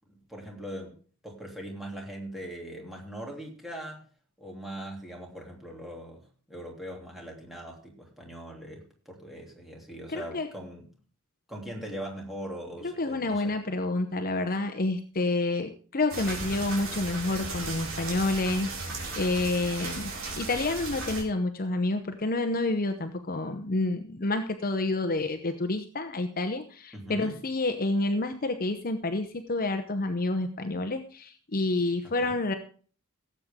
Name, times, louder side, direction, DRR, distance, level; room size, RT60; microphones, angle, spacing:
voice 1, 0.1-1.0 1.2-4.0 4.4-10.9 11.5-13.6 26.9-27.4 32.2-32.4, right 1 dB, ahead, -1 dB, 3.1 m, -41 dB
voice 2, 10.1-10.5 12.8-18.7 19.2-32.5, left 2 dB, 45° left, 7 dB, 0.9 m, -29 dB
sound 1, 16.1-21.2, right 3 dB, 65° right, 4.0 m, -36 dB
17.5 x 8.0 x 3.7 m, 0.41 s
head